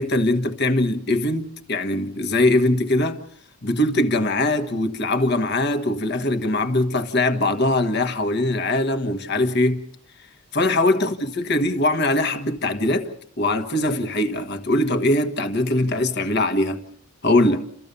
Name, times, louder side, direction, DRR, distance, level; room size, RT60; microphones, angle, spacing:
voice 1, 0.0-3.2 3.6-9.8 10.5-16.8 17.2-17.7, left 1 dB, 50° left, 1.5 m, -21 dB
30.0 x 14.5 x 6.9 m
head